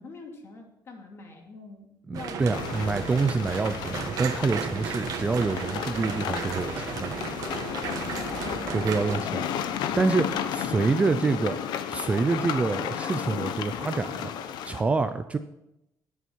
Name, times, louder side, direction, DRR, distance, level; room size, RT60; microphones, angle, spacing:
voice 1, 0.0-3.1 8.2-9.8 10.3-10.5, left 3 dB, 35° left, 1 dB, 2.7 m, -45 dB
voice 2, 2.1-7.1 8.7-9.4 10.0-11.6 11.9-15.4, right 4 dB, 20° right, 9 dB, 0.5 m, -27 dB
sound 1, 2.1-9.2, right 7 dB, 55° right, 1.3 m, -35 dB
sound 2, 2.4-10.8, left 1 dB, 5° left, 4.9 m, -50 dB
sound 3, 2.5-14.8, left 9 dB, 75° left, 1.0 m, -33 dB
19.0 x 7.1 x 4.5 m, 0.87 s
cardioid pair, 170°, 7 cm